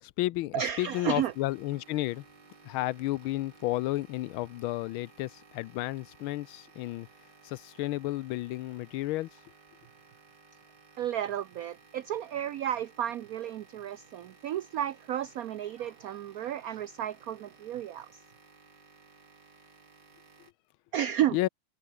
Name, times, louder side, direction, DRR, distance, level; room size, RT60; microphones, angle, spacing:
voice 1, 0.0-2.2 2.6-7.1 7.4-9.3 21.3-21.5, left 17 dB, 85° left, 1.5 m, -32 dB
voice 2, 0.5-1.3 11.0-18.2 20.9-21.4, right 11 dB, 85° right, 0.7 m, -32 dB
sound 1, 0.7-20.5, right 4 dB, 60° right, 4.1 m, -58 dB
omnidirectional pair, 2.2 m